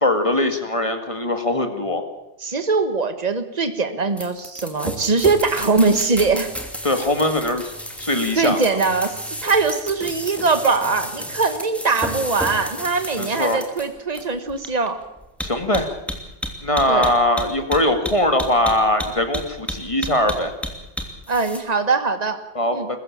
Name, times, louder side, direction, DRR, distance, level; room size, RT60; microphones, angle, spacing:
voice 1, 0.0-2.0 6.8-7.7 8.0-8.6 13.2-13.6 15.4-15.9 16.6-20.5 22.6-22.8, left 1 dB, 25° left, 7 dB, 2.1 m, -21 dB
voice 2, 2.4-6.5 8.4-15.0 16.9-17.2 21.3-22.4 22.7-22.9, right 4 dB, 35° right, 9 dB, 1.6 m, -21 dB
sound 1, 4.2-21.6, equal, ahead, 2.9 m, -31 dB
22.0 x 14.5 x 8.8 m, 0.94 s
omnidirectional pair, 1.2 m